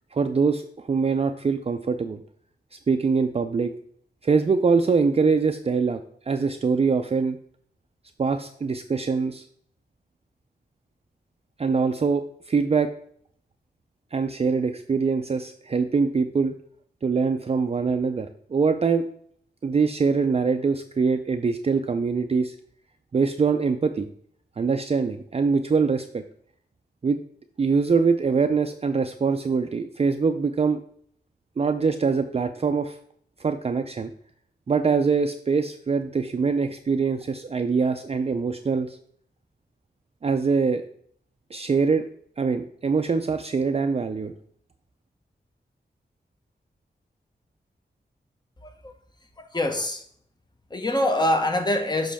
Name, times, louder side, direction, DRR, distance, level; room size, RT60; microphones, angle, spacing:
voice 1, 0.1-2.2 2.7-3.7 4.2-7.4 8.2-9.4 11.6-12.9 14.1-16.5 17.0-19.0 19.6-22.5 23.1-24.1 24.6-26.2 27.0-27.2 27.6-30.8 31.6-33.0 33.4-34.1 34.7-39.0 40.2-40.8 41.5-42.1 42.4-44.3, right 5 dB, 35° right, 0.4 m, -23 dB
voice 2, 48.6-48.9 49.4-50.0 50.7-52.1, left 1 dB, 25° left, 1.0 m, -25 dB
7.4 x 5.5 x 3.4 m
wide cardioid pair, 105°, 17 cm